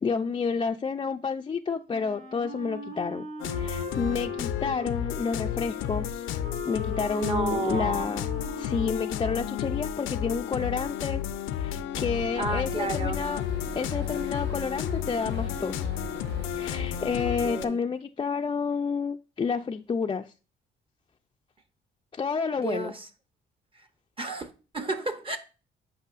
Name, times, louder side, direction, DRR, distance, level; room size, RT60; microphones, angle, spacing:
voice 1, 0.0-3.3 3.5-6.3 6.7-8.3 8.6-11.2 11.5-13.4 13.7-15.9 16.5-20.3 22.1-22.9, left 5 dB, 25° left, 0.4 m, -30 dB
Wind instrument woodwind instrument, 1.9-10.0, right 2 dB, 45° right, 3.8 m, -42 dB
sound 1, 3.4-17.7, left 10 dB, 85° left, 0.5 m, -32 dB
voice 2, 7.1-8.1 12.4-13.2 17.4-17.8 22.6-23.1 23.7-23.9 24.2-25.4, right 3 dB, 25° right, 0.8 m, -32 dB
sound 2, 11.9-17.3, right 5 dB, 65° right, 0.9 m, -43 dB
8.2 x 5.4 x 2.5 m
cardioid pair, 90°, 20 cm